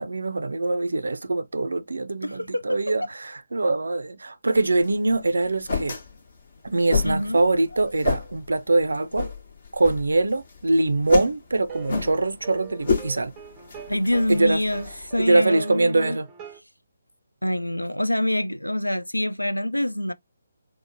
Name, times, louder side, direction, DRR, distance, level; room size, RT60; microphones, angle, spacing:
voice 1, 0.0-6.0 6.6-9.3 9.7-13.3 14.3-14.6 15.2-16.3, right 2 dB, 65° right, 0.5 m, -23 dB
voice 2, 2.2-3.0 7.0-7.4 13.9-14.9 15.1-16.2 17.4-20.1, left 1 dB, 85° left, 0.3 m, -26 dB
sound 1, 4.6-15.3, left 4 dB, 45° left, 0.9 m, -31 dB
sound 2, 11.7-16.6, right 6 dB, 15° right, 0.5 m, -42 dB
4.7 x 2.0 x 2.6 m
figure-of-eight pair, 145°, 0 cm